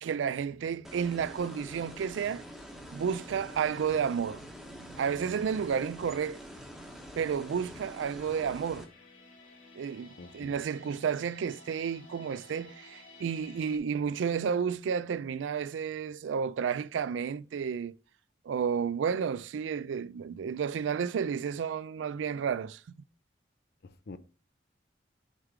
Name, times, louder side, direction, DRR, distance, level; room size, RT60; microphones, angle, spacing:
voice 1, 0.0-2.4 2.8-6.4 7.2-8.9 9.8-17.9 18.5-23.0, right 7 dB, 80° right, 0.3 m, -32 dB
sound 1, 0.8-8.8, equal, ahead, 1.0 m, -46 dB
sound 2, 8.4-13.8, left 2 dB, 85° left, 2.6 m, -54 dB
voice 2, 10.2-10.6 23.8-24.2, left 3 dB, 55° left, 0.5 m, -46 dB
6.5 x 3.6 x 4.7 m
head